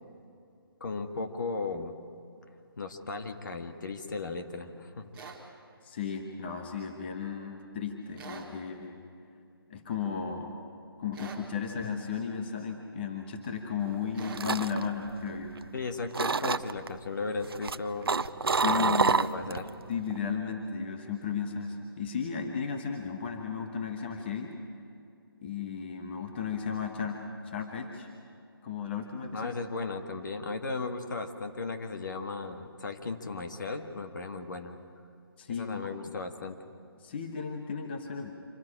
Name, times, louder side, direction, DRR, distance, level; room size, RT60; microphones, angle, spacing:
voice 1, 0.8-1.9 2.8-5.1 15.7-18.1 18.6-19.7 29.3-34.8 35.6-36.6, left 3 dB, 50° left, 6 dB, 1.7 m, -36 dB
sound 1, 5.1-5.4 8.2-8.5 11.1-11.5 14.1-14.5, right 5 dB, 10° right, 1.7 m, -44 dB
voice 2, 5.8-9.0 9.7-10.5 11.0-15.5 18.4-19.3 19.9-24.5 25.4-27.2 27.4-28.1 28.6-29.5 35.4-35.8 36.1-36.2 37.0-38.3, left 6 dB, 25° left, 3 dB, 1.2 m, -34 dB
sound 2, 13.9-15.8 16.1-16.9 17.4-19.7 20.0-20.4, right 5 dB, 70° right, 0.7 m, -28 dB
26.0 x 13.5 x 10.0 m, 2.5 s
figure-of-eight pair, 165°, 13 cm